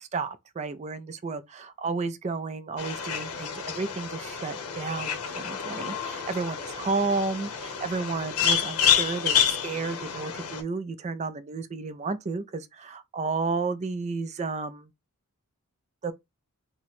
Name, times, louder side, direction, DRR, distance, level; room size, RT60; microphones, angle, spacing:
voice 1, 0.0-14.9 16.0-16.1, right 4 dB, 30° right, 0.3 m, -32 dB
sound 1, 2.8-10.6, left 8 dB, 75° left, 0.7 m, -28 dB
2.9 x 2.1 x 4.1 m
head